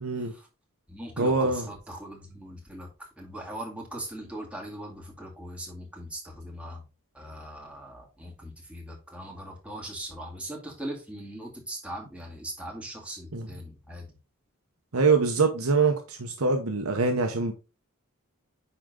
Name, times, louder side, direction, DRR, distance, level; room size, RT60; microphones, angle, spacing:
voice 1, 0.0-0.3 1.2-1.7 13.3-13.5 14.9-17.5, right 4 dB, 75° right, 1.0 m, -24 dB
voice 2, 0.9-6.9 7.1-14.2, right 1 dB, 5° right, 2.2 m, -40 dB
10.0 x 3.8 x 3.8 m
head